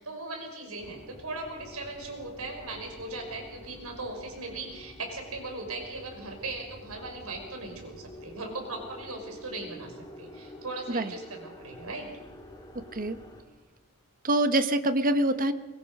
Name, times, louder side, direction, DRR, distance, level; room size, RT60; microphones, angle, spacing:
voice 1, 0.0-12.1, right 2 dB, 80° right, 3 dB, 5.5 m, -38 dB
sound 1, 0.8-13.4, left 1 dB, 20° left, 2.8 m, -48 dB
voice 2, 12.7-13.2 14.2-15.5, right 1 dB, 40° right, 10 dB, 1.2 m, -25 dB
23.5 x 22.0 x 5.5 m, 1.2 s
head